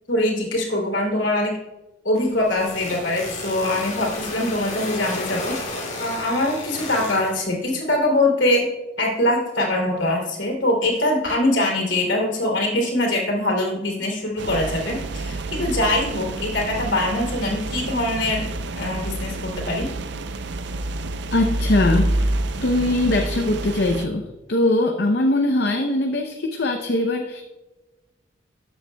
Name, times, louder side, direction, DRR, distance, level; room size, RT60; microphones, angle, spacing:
voice 1, 0.1-1.5 2.0-5.6 6.0-8.7 9.0-18.5 18.8-19.9, left 1 dB, 70° left, -1 dB, 2.8 m, -23 dB
sound 1, 2.1-7.3, left 2 dB, 35° left, 2.0 m, -33 dB
sound 2, 14.4-24.1, right 2 dB, 60° right, 0.5 m, -28 dB
voice 2, 21.3-27.4, left 2 dB, 55° left, 3 dB, 0.6 m, -21 dB
13.5 x 7.8 x 2.2 m, 1.1 s
head